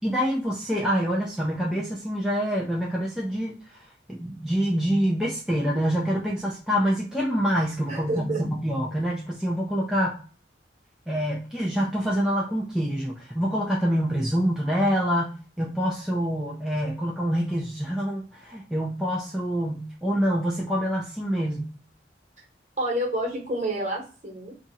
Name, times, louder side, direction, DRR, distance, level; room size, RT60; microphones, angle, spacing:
voice 1, 0.0-3.8 4.1-10.2 11.1-21.7, equal, 5° right, -4 dB, 0.4 m, -26 dB
voice 2, 7.9-8.4 22.8-24.5, right 1 dB, 40° right, -1 dB, 1.2 m, -28 dB
2.8 x 2.4 x 4.0 m, 0.38 s
head